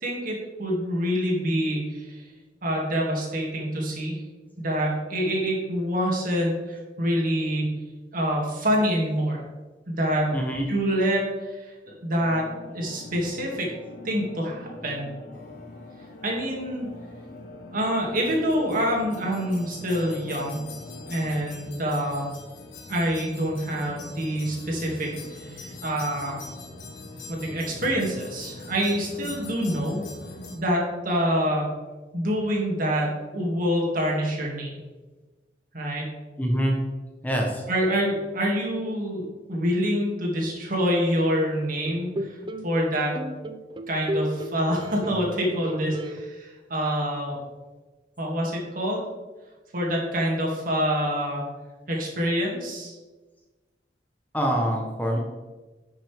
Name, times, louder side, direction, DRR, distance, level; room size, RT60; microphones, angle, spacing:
voice 1, 0.0-2.2 2.6-4.2 4.6-7.8 8.1-9.4 9.9-10.4 10.7-12.4 12.7-13.7 14.0-15.1 16.2-16.9 17.7-20.7 21.1-22.3 22.9-26.4 27.3-30.0 30.5-31.7 32.1-34.8 35.7-36.1 37.7-42.4 42.6-43.2 43.9-47.4 48.2-49.0 49.7-51.4 51.9-53.0, equal, 50° right, -2 dB, 2.3 m, -26 dB
voice 2, 10.3-10.7 36.4-36.7 37.2-37.6 54.3-55.2, equal, 10° left, 0 dB, 1.0 m, -25 dB
sound 1, 12.2-21.4, left 2 dB, 50° left, 0.9 m, -44 dB
sound 2, 15.3-30.6, left 2 dB, 80° left, 1.5 m, -43 dB
sound 3, 41.9-42.7 43.1-45.4 45.6-46.2, equal, 25° right, 0.4 m, -32 dB
10.5 x 6.2 x 3.5 m, 1.2 s
head